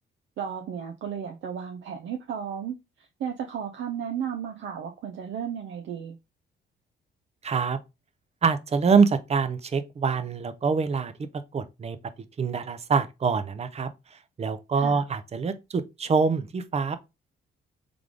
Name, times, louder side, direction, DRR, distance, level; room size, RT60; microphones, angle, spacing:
voice 1, 0.4-2.8 3.2-6.2 14.7-15.0, right 8 dB, 70° right, 0.7 m, -34 dB
voice 2, 7.4-7.8 8.4-11.1 11.5-12.0 12.4-17.0, right 5 dB, 30° right, 0.6 m, -25 dB
3.6 x 3.4 x 3.6 m
cardioid pair, 90°, 20 cm